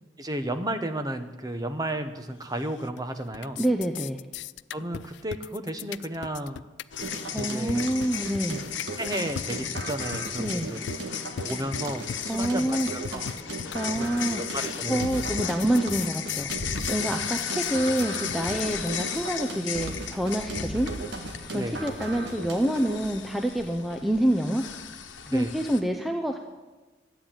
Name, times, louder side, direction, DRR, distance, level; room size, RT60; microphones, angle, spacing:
voice 1, 0.2-3.6 4.7-6.6 7.3-7.9 9.0-10.8 11.4-13.3 14.0-15.1 17.1-17.2 18.5-18.6 21.5-21.8 25.3-25.5, right 1 dB, 20° right, 8 dB, 0.9 m, -33 dB
sound 1, 2.5-3.0 3.3-19.3, left 8 dB, 70° left, 0.3 m, -39 dB
voice 2, 3.6-4.2 7.3-8.6 10.4-10.7 12.3-12.9 13.7-14.4 14.9-16.5 16.9-20.9 21.5-24.6 25.3-26.4, right 1 dB, ahead, 4 dB, 0.6 m, -27 dB
sound 2, 6.9-25.8, left 8 dB, 90° left, 1.1 m, -35 dB
sound 3, 7.0-23.0, right 2 dB, 70° right, 1.7 m, -37 dB
12.5 x 9.0 x 8.8 m, 1.2 s
head